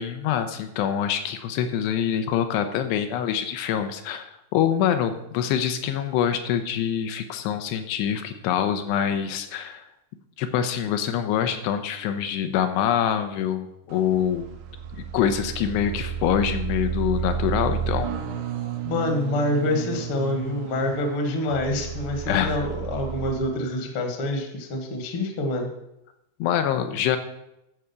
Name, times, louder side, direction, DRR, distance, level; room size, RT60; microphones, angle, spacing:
voice 1, 0.0-9.8 10.4-14.5 15.1-18.1 22.3-22.6 26.4-27.2, left 9 dB, 85° left, 7 dB, 2.8 m, -25 dB
sound 1, 13.9-23.3, right 8 dB, 75° right, 1.9 m, -31 dB
voice 2, 18.8-25.7, left 1 dB, 50° left, 3 dB, 1.6 m, -26 dB
12.5 x 5.0 x 7.0 m, 0.84 s
omnidirectional pair, 5.0 m